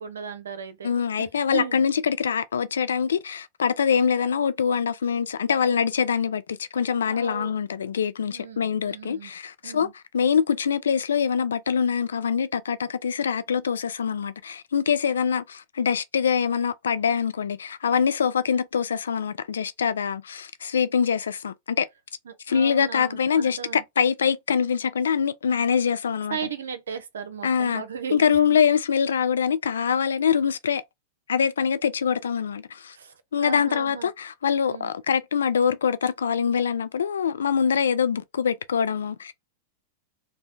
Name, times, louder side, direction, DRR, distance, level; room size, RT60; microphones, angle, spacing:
voice 1, 0.0-0.9 1.2-1.3 1.5-1.8 7.1-7.5 8.3-8.6 8.8-9.3 9.6-9.9 22.3-23.8 26.3-28.1 28.5-28.6 32.9-34.1 34.7-34.9, right 7 dB, 85° right, 0.6 m, -36 dB
voice 2, 0.8-9.9 10.1-21.9 22.5-26.4 27.4-27.8 28.1-30.8 31.3-33.0 33.3-39.3, left 7 dB, 85° left, 0.3 m, -24 dB
3.0 x 2.1 x 2.5 m
hypercardioid pair, 110°, 0 cm